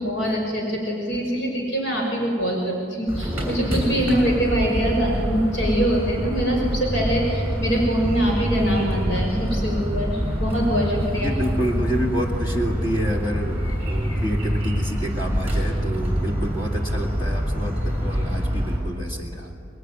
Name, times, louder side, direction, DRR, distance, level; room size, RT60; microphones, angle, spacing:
voice 1, 0.0-11.3, equal, 65° left, -1 dB, 5.9 m, -23 dB
sound 1, 3.1-18.8, equal, 10° right, 6.5 m, -25 dB
voice 2, 11.1-13.6 13.9-19.5, equal, 20° left, 0 dB, 2.2 m, -28 dB
24.5 x 21.5 x 9.5 m, 2.7 s
head